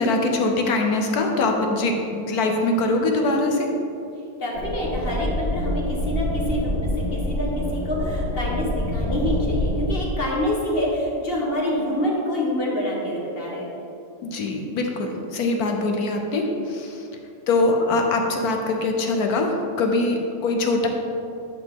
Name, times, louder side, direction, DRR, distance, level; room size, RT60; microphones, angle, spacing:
voice 1, 0.0-3.7 14.2-17.1 17.5-20.9, left 2 dB, 70° left, 3 dB, 1.2 m, -23 dB
voice 2, 4.4-13.7, left 1 dB, 40° left, -2 dB, 1.4 m, -26 dB
sound 1, 4.5-9.9, left 1 dB, 85° left, 2.5 m, -26 dB
sound 2, 8.9-10.1 11.6-11.7 12.4-13.7, right 2 dB, 90° right, 1.5 m, -40 dB
11.0 x 5.4 x 3.7 m, 2.7 s
omnidirectional pair, 1.7 m